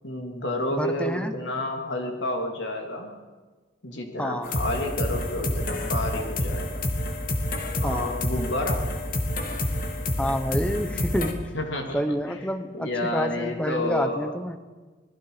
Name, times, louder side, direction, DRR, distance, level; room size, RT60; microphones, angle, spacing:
voice 1, 0.0-3.1 3.8-6.8 7.8-8.8 11.5-12.2 12.7-14.3, left 1 dB, 70° left, 2 dB, 3.2 m, -30 dB
voice 2, 0.8-1.3 4.2-4.5 7.8-8.2 10.2-11.4 11.9-14.6, equal, 5° left, 9 dB, 1.1 m, -28 dB
sound 1, 4.4-11.3, left 1 dB, 45° left, 2.6 m, -28 dB
28.0 x 20.5 x 5.1 m, 1.3 s
head